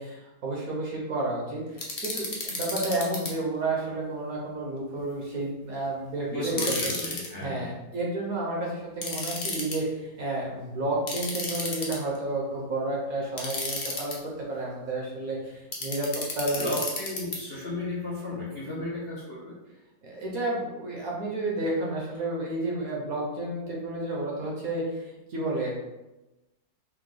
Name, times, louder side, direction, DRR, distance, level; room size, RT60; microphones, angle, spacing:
voice 1, 0.0-6.9 7.4-16.7 20.0-25.7, right 2 dB, 60° right, -3 dB, 1.2 m, -31 dB
sound 1, 1.8-3.3 6.5-7.3 9.0-9.8 11.1-12.2 13.4-14.2 15.7-17.4, left 3 dB, 70° left, 0.4 m, -32 dB
voice 2, 6.3-7.7 16.6-19.6, left 1 dB, 45° left, -8 dB, 0.8 m, -34 dB
4.7 x 2.2 x 3.8 m, 1.0 s
omnidirectional pair, 1.9 m